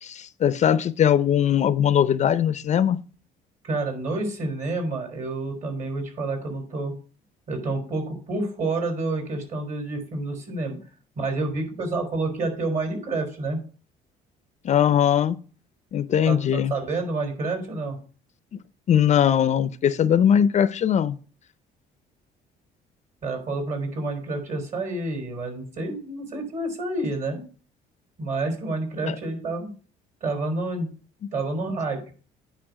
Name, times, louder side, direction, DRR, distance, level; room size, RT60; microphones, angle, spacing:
voice 1, 0.0-3.0 14.6-15.4 15.9-16.7 18.5-18.6 18.9-21.2 29.1-29.2, left 9 dB, 45° left, 0.5 m, -20 dB
voice 2, 3.6-6.9 7.5-10.8 11.2-13.6 16.2-18.0 23.2-27.4 28.2-29.7 30.2-30.9 31.3-32.1, right 2 dB, 50° right, 3.9 m, -29 dB
8.9 x 5.3 x 4.8 m
cardioid pair, 110°, 17 cm